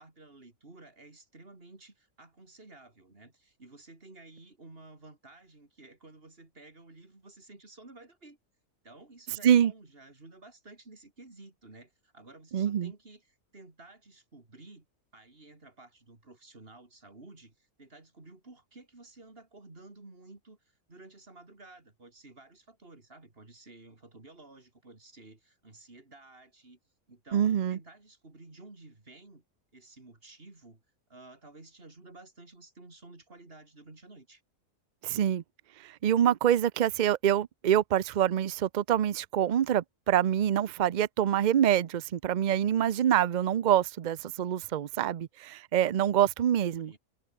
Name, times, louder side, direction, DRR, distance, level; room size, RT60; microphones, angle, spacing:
voice 1, 0.0-8.4 8.8-14.9 15.1-26.8 27.1-29.4 29.7-30.8 31.1-34.4 46.8-47.0, right 2 dB, 40° right, 3.7 m, -53 dB
voice 2, 12.5-12.9 27.3-27.8 35.0-35.4 35.8-46.9, right 10 dB, 85° right, 0.4 m, -26 dB
omnidirectional pair, 1.6 m